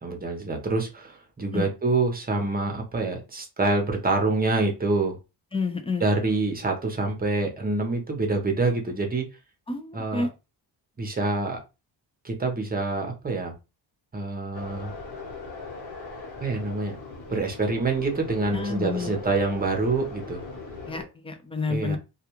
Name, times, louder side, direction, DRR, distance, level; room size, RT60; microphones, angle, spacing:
voice 1, 0.0-5.2 6.0-9.2 9.9-10.3 11.0-11.6 12.2-13.5 14.1-14.9 16.4-17.0 17.3-20.4 21.7-22.0, right 3 dB, 20° right, 2 dB, 0.8 m, -26 dB
voice 2, 5.5-6.0 9.7-10.3 18.5-19.1 20.9-22.0, left 4 dB, 15° left, 7 dB, 0.4 m, -29 dB
sound 1, 14.5-21.1, left 3 dB, 65° left, 1.2 m, -39 dB
2.4 x 2.2 x 2.9 m, 0.27 s
cardioid pair, 110°, 42 cm